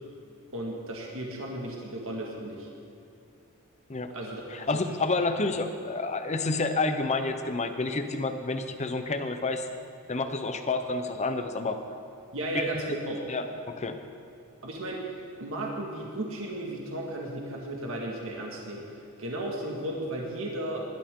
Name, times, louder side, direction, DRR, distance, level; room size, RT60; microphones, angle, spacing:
voice 1, 0.5-2.7 4.1-4.8 12.3-13.2 14.6-15.0 15.4-20.8, right 1 dB, 65° right, -1 dB, 2.0 m, -35 dB
voice 2, 4.5-9.7 10.1-11.8 12.5-12.7 13.3-14.0, left 3 dB, 30° left, 7 dB, 0.9 m, -29 dB
20.5 x 12.0 x 3.8 m, 2.6 s
head